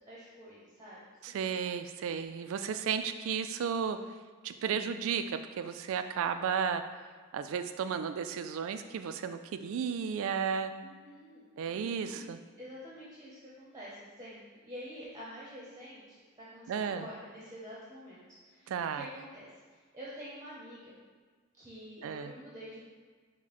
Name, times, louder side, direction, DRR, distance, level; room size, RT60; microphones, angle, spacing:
voice 1, 0.1-1.4 10.8-12.3 12.6-20.9 21.6-22.8, equal, 15° right, -7 dB, 0.8 m, -48 dB
voice 2, 1.2-4.0 4.4-6.8 7.3-10.7 11.6-12.4 16.7-17.1 18.7-19.0 22.0-22.3, right 7 dB, 65° right, 10 dB, 0.3 m, -33 dB
6.0 x 2.1 x 4.2 m, 1.5 s
head